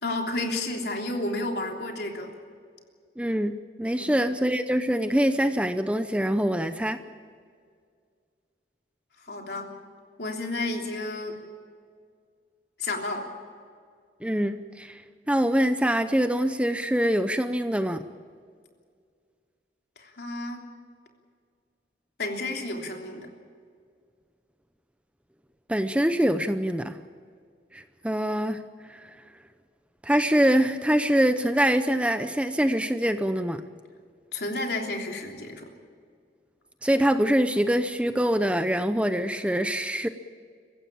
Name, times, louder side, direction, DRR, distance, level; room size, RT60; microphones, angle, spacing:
voice 1, 0.0-2.3 4.0-4.1 9.2-9.7 10.2-11.4 12.8-13.3 20.0-20.7 22.2-23.3 34.3-35.7, left 2 dB, 65° left, 2 dB, 3.3 m, -31 dB
voice 2, 3.2-7.0 14.2-15.0 15.3-18.0 25.7-27.0 27.7-28.6 28.9-29.1 30.0-33.6 36.8-40.1, equal, 5° right, 9 dB, 0.6 m, -24 dB
24.0 x 15.0 x 8.8 m, 2.1 s
head